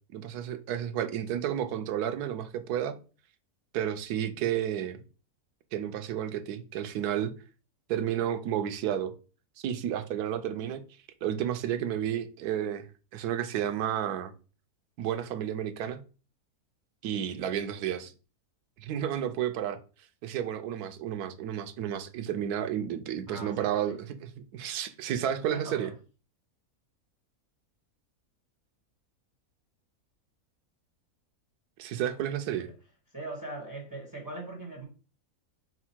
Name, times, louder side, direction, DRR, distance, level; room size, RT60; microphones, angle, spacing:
voice 1, 0.1-2.9 3.7-5.0 5.7-7.3 7.9-9.1 9.6-10.8 11.2-12.9 13.1-14.3 15.0-16.0 17.0-18.1 18.8-19.8 20.2-25.9 31.8-32.7, right 10 dB, 85° right, 1.1 m, -31 dB
voice 2, 23.3-24.0 25.4-25.9 33.1-34.9, right 2 dB, 15° right, 1.2 m, -40 dB
4.5 x 2.1 x 4.3 m
omnidirectional pair, 1.6 m